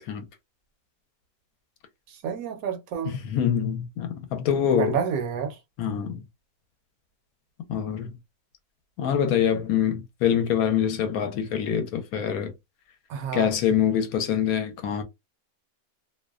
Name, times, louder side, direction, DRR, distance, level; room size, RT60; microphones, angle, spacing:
voice 1, 2.1-3.2 4.8-5.6 13.1-13.5, right 7 dB, 70° right, 0.9 m, -29 dB
voice 2, 3.1-5.0 5.8-6.2 7.7-8.1 9.0-12.5 13.3-15.0, left 8 dB, 70° left, 1.0 m, -25 dB
2.6 x 2.1 x 2.3 m
omnidirectional pair, 1.6 m